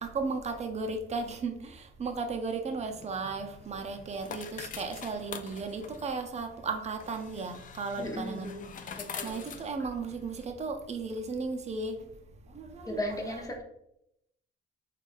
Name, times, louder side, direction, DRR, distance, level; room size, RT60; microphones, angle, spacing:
voice 1, 0.0-12.0 12.5-13.0, right 4 dB, 35° right, 4 dB, 0.5 m, -35 dB
sound 1, 2.8-10.5, left 7 dB, 40° left, 0.4 m, -45 dB
voice 2, 8.0-8.7 9.0-9.5 12.8-13.6, left 1 dB, 15° left, 1 dB, 0.7 m, -36 dB
3.8 x 2.3 x 2.5 m, 0.79 s
cardioid pair, 90°, 20 cm